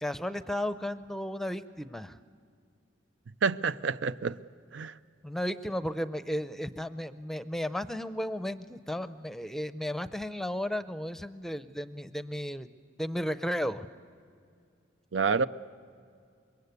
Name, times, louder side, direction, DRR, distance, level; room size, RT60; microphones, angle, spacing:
voice 1, 0.0-2.2 5.2-12.7 13.0-13.9, equal, ahead, 12 dB, 0.6 m, -34 dB
voice 2, 3.4-4.4 4.7-4.9 15.1-15.5, right 5 dB, 80° right, 14 dB, 0.6 m, -28 dB
25.5 x 22.5 x 8.2 m, 2.3 s
head